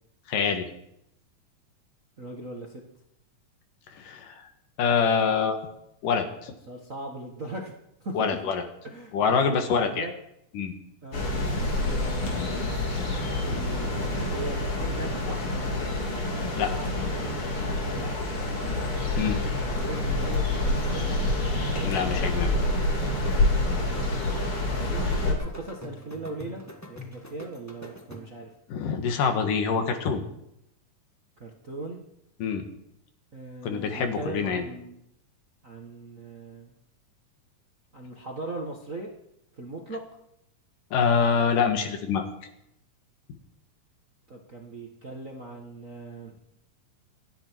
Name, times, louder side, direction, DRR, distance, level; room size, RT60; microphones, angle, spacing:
voice 1, 0.3-0.7 4.0-4.4 4.8-5.6 6.0-6.5 8.1-8.6 9.1-10.1 10.5-10.7 16.6-16.7 19.2-19.4 21.8-22.6 28.7-30.2 32.4-32.6 33.6-34.6 40.9-42.3, left 6 dB, 80° left, 6 dB, 3.3 m, -25 dB
voice 2, 2.2-2.8 6.7-7.7 8.0-8.3 8.8-9.1 9.8-10.1 11.0-11.2 11.8-12.9 13.4-15.4 17.9-18.3 19.6-21.3 24.8-26.6 26.9-28.5 31.4-32.0 33.3-35.0 35.6-36.7 37.9-39.1 39.6-40.0 44.3-46.3, right 2 dB, 40° right, 1 dB, 1.3 m, -39 dB
sound 1, 11.1-25.3, left 2 dB, 45° left, 3.8 m, -27 dB
sound 2, 19.0-28.5, left 2 dB, 20° left, 0.4 m, -43 dB
27.5 x 10.5 x 4.6 m, 0.78 s
omnidirectional pair, 3.7 m